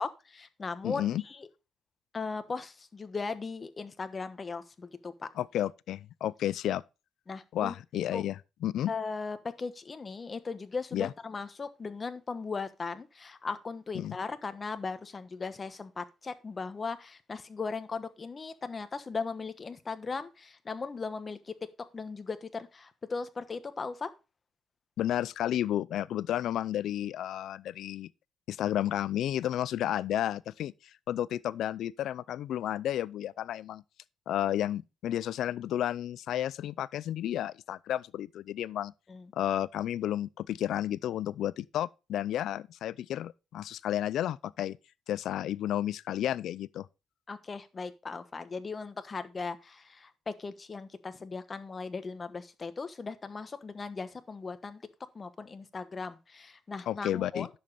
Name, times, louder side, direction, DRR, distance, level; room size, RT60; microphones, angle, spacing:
voice 1, 0.0-1.5 2.1-5.3 7.3-7.7 8.1-8.2 8.9-21.7 21.9-24.1 39.1-39.3 47.3-54.8 55.1-57.5, left 4 dB, 35° left, 1.2 m, -38 dB
voice 2, 0.8-1.2 5.4-6.8 7.5-8.4 8.6-8.9 10.9-11.1 13.9-14.2 25.0-28.1 28.5-30.7 31.1-33.8 34.3-38.9 39.3-44.8 45.1-46.9 56.9-57.5, left 12 dB, 75° left, 0.4 m, -32 dB
10.5 x 7.2 x 4.0 m
cardioid pair, 90°, 0 cm